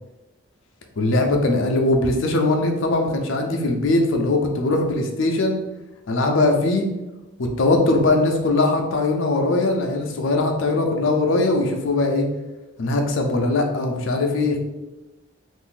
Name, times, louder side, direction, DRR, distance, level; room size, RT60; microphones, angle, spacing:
voice 1, 1.0-5.6 6.1-6.9 7.4-12.3 12.8-14.6, left 2 dB, 75° left, 3 dB, 0.5 m, -20 dB
2.5 x 2.5 x 3.8 m, 1.0 s
head